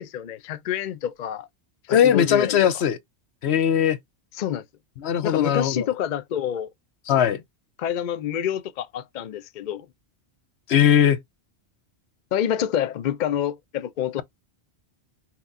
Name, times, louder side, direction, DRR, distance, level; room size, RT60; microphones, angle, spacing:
voice 1, 0.0-1.5 1.9-2.6 4.3-4.6 5.2-6.7 7.8-9.9 12.3-14.2, left 10 dB, 55° left, 0.6 m, -27 dB
voice 2, 1.9-3.0 3.4-4.0 5.0-5.9 7.1-7.4 10.7-11.2, left 9 dB, 75° left, 1.0 m, -19 dB
5.8 x 2.9 x 2.5 m
omnidirectional pair, 1.1 m